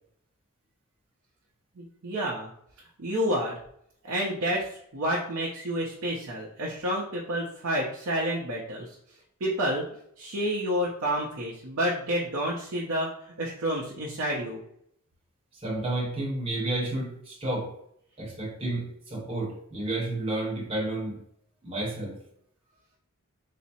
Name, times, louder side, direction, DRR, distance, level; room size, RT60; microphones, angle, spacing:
voice 1, 1.8-2.5 3.0-3.6 4.0-9.0 9.4-9.9 10.2-13.1 13.4-14.6, equal, 65° right, -4 dB, 0.6 m, -29 dB
voice 2, 15.6-17.7 18.2-21.2 21.6-22.2, right 2 dB, 25° right, -3 dB, 0.9 m, -31 dB
3.4 x 2.0 x 4.1 m, 0.69 s
head